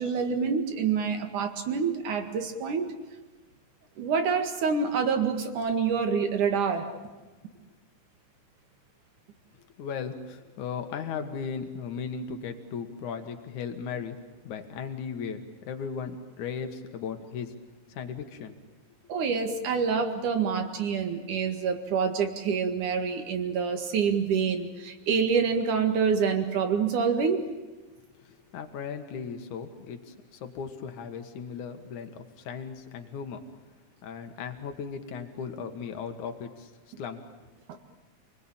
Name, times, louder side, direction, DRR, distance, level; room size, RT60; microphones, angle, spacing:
voice 1, 0.0-2.9 4.0-6.9 19.1-27.4 37.7-37.8, right 6 dB, 85° right, 5 dB, 3.5 m, -27 dB
voice 2, 9.8-14.2 14.4-17.5 17.9-18.6 28.2-33.4 34.0-36.7 37.0-37.2, left 6 dB, 80° left, 6 dB, 3.1 m, -37 dB
29.5 x 20.0 x 9.0 m, 1.3 s
omnidirectional pair, 3.4 m